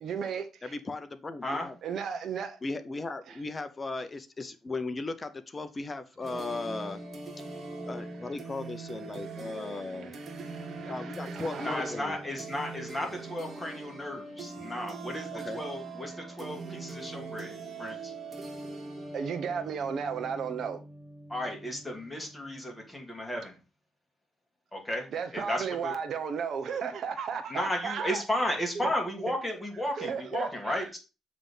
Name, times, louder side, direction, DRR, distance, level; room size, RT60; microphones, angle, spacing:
voice 1, 0.0-0.8 1.8-2.6 3.3-3.4 9.4-12.0 19.1-20.8 25.1-28.2 29.9-30.8, right 6 dB, 60° right, 1.0 m, -35 dB
voice 2, 0.6-1.8 2.6-7.0 7.8-10.1 10.9-12.2 14.6-14.7 15.3-15.6, left 3 dB, 30° left, 0.7 m, -37 dB
sound 1, 6.2-22.8, right 3 dB, 40° right, 1.8 m, -42 dB
voice 3, 11.6-18.1 21.3-23.6 24.7-25.9 27.5-31.0, left 1 dB, 15° left, 2.5 m, -34 dB
7.3 x 3.5 x 5.4 m
cardioid pair, 90°, 0 cm